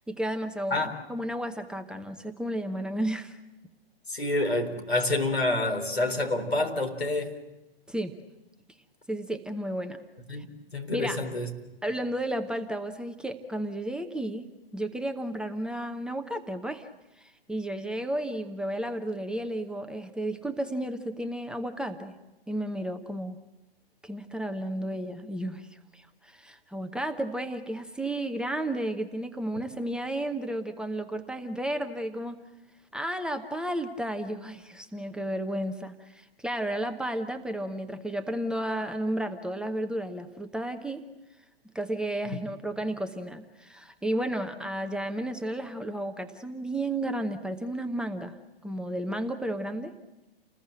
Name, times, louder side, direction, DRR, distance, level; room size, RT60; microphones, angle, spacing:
voice 1, 0.1-3.4 7.9-8.1 9.1-10.0 10.4-10.5 10.9-11.2 11.8-16.9 17.2-22.1 22.5-23.4 24.0-32.4 32.9-41.0 41.7-48.4 48.6-49.9, right 1 dB, 5° right, 6 dB, 0.8 m, -33 dB
voice 2, 4.1-7.4 10.3-10.5 10.7-11.5, left 2 dB, 80° left, 3 dB, 4.0 m, -28 dB
29.5 x 20.5 x 7.9 m, 1.0 s
figure-of-eight pair, 115°, 31 cm